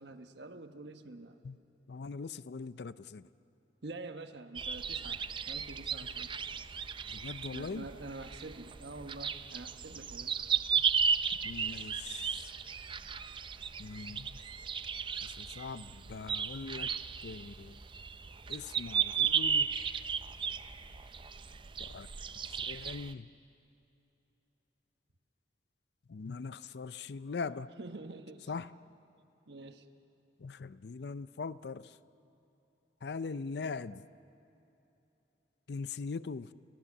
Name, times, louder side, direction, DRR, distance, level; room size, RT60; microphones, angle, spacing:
voice 1, 0.0-1.4 3.8-5.2 5.5-6.3 7.5-10.4 27.8-28.5 29.5-29.9, right 2 dB, 75° right, 7 dB, 1.1 m, -46 dB
voice 2, 1.9-3.2 7.1-7.9 11.4-12.5 13.8-14.4 15.2-16.9 17.2-17.8 18.5-19.7 21.8-22.1 22.4-23.3 26.1-27.7 28.5-28.7 30.4-31.9 33.0-34.0 35.7-36.5, left 4 dB, 65° left, 16 dB, 0.5 m, -41 dB
sound 1, 4.6-23.1, right 6 dB, 30° right, 0.5 m, -35 dB
29.5 x 16.5 x 7.1 m, 3.0 s
head